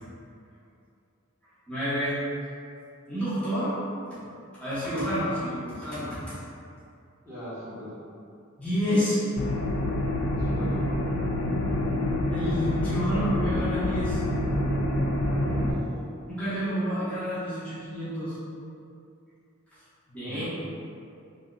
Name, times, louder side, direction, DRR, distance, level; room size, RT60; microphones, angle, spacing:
voice 1, 1.7-2.2 3.1-3.7 4.1-4.2 4.6-6.3 8.6-9.2 12.3-14.2 16.3-18.4 20.1-20.5, equal, 5° left, -14 dB, 0.9 m, -29 dB
voice 2, 7.2-8.0 10.4-10.8 15.4-16.0 20.2-20.5, left 1 dB, 15° right, -13 dB, 1.1 m, -40 dB
sound 1, 9.4-15.7, left 1 dB, 60° left, 0.3 m, -27 dB
2.8 x 2.7 x 2.4 m, 2.5 s
head